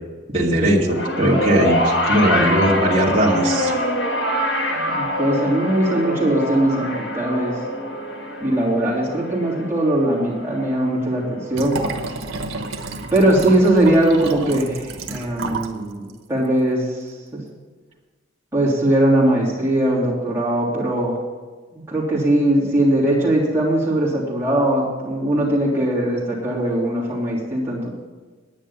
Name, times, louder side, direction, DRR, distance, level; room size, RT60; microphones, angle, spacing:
voice 1, 0.3-3.7, right 1 dB, 30° right, -4 dB, 2.3 m, -19 dB
sound 1, 0.9-11.3 12.4-12.5, left 1 dB, 55° left, 1.7 m, -24 dB
voice 2, 4.7-7.6 8.4-11.7 13.1-17.4 18.5-21.2 21.7-27.9, right 1 dB, 10° right, -6 dB, 3.1 m, -20 dB
Liquid, 11.5-15.8 16.1-16.2, right 3 dB, 80° right, 1.3 m, -30 dB
10.0 x 10.0 x 7.1 m, 1.4 s
head